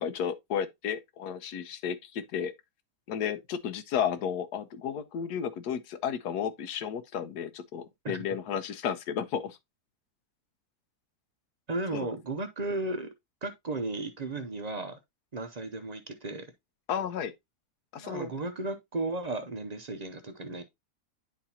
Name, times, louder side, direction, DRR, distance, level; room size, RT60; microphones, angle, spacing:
voice 1, 0.0-2.5 3.1-9.6 11.9-12.1 16.9-17.3 17.9-18.3, left 8 dB, 80° left, 1.3 m, -33 dB
voice 2, 11.7-13.1 13.4-15.0 15.3-16.5 17.9-20.6, right 2 dB, 55° right, 0.4 m, -34 dB
10.0 x 4.2 x 2.8 m
omnidirectional pair, 1.7 m